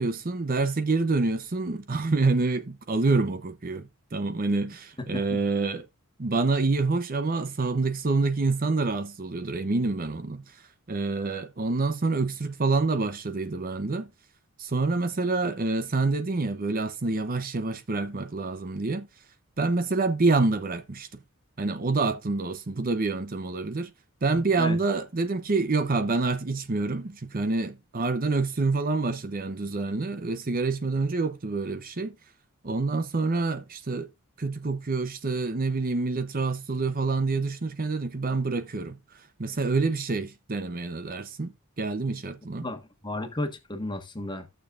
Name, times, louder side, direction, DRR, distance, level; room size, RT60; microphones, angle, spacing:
voice 1, 0.0-5.8 6.2-10.4 10.9-14.1 14.6-19.1 19.6-21.1 21.6-23.9 24.2-32.1 32.6-34.1 34.4-39.0 39.4-42.7, right 3 dB, 40° right, 0.7 m, -27 dB
voice 2, 5.0-5.4 24.6-24.8 42.6-44.5, left 2 dB, 20° left, 1.4 m, -34 dB
15.0 x 6.8 x 2.5 m
head